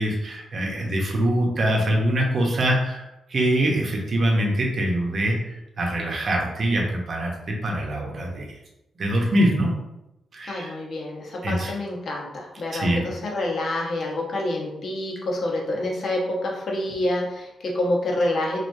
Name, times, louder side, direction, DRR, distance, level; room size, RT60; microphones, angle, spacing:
voice 1, 0.0-5.4 5.8-8.4 9.0-9.7 10.3-10.7 11.4-11.7 12.7-13.0, right 1 dB, 40° right, -1 dB, 0.9 m, -23 dB
voice 2, 10.5-18.6, left 1 dB, 50° left, -1 dB, 1.0 m, -27 dB
4.1 x 3.3 x 2.7 m, 0.92 s
wide cardioid pair, 150°, 0 cm